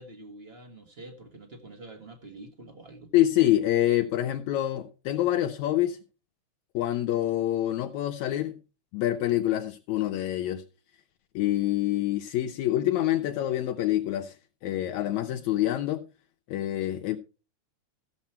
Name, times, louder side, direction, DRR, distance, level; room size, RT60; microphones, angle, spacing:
voice 1, 0.0-3.1, right 2 dB, 35° right, 1.0 m, -46 dB
voice 2, 3.1-6.0 6.7-8.6 8.9-10.7 11.4-16.0 16.5-17.2, left 13 dB, 75° left, 1.9 m, -26 dB
14.5 x 7.1 x 4.3 m
omnidirectional pair, 3.4 m